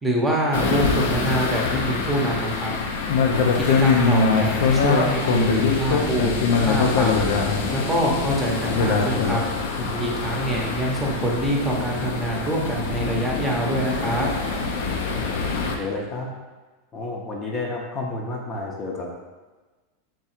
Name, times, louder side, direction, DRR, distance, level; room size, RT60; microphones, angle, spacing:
voice 1, 0.0-2.7 3.5-6.3 6.6-7.3 7.7-9.4 10.0-14.3, right 1 dB, 10° right, -2 dB, 0.8 m, -25 dB
sound 1, 0.5-15.8, left 4 dB, 80° left, 0.5 m, -23 dB
voice 2, 15.6-16.3 16.9-19.1, left 2 dB, 30° left, -1 dB, 0.7 m, -31 dB
3.6 x 2.4 x 4.3 m, 1.3 s
supercardioid pair, 125°, 0 cm